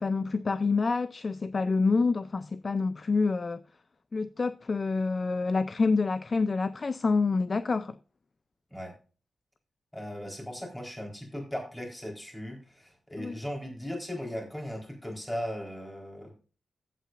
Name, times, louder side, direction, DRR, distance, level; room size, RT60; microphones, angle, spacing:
voice 1, 0.0-3.6 4.1-8.0 13.2-13.4, left 4 dB, 30° left, 0.4 m, -27 dB
voice 2, 9.9-16.4, equal, 10° left, 4.1 m, -38 dB
15.0 x 8.4 x 2.5 m
wide cardioid pair, 175°, 0 cm